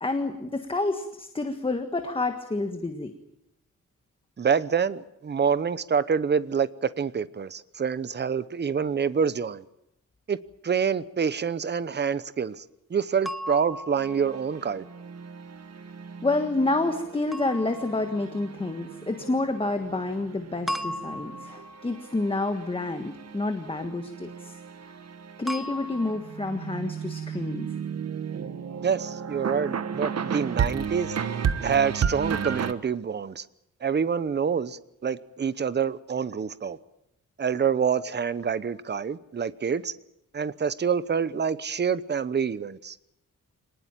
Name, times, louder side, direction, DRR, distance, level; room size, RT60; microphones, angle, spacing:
voice 1, 0.0-3.1 16.2-24.5 25.4-27.7, left 2 dB, 15° left, 1.5 m, -29 dB
voice 2, 4.4-9.6 10.3-10.4 10.6-12.6 12.9-14.8 28.8-31.2 31.6-33.4 33.8-36.8 37.4-39.9 40.3-42.9, right 6 dB, 35° right, 0.9 m, -27 dB
sound 1, 13.3-14.7 17.3-18.5 20.7-22.1 25.5-26.2, equal, ahead, 1.0 m, -36 dB
sound 2, 14.0-32.7, right 7 dB, 50° right, 1.3 m, -34 dB
25.5 x 19.5 x 9.1 m
wide cardioid pair, 165°, 32 cm